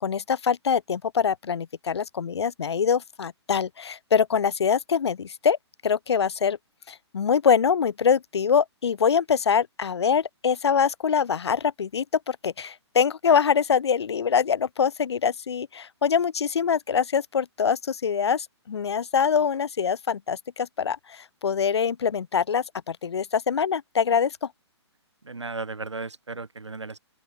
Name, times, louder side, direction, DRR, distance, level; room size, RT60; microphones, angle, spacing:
voice 1, 0.0-5.6 5.8-6.6 6.9-24.5, left 7 dB, 70° left, 1.0 m, -24 dB
voice 2, 25.2-27.0, right 3 dB, 85° right, 2.4 m, -35 dB
open air
figure-of-eight pair, 130°, 15 cm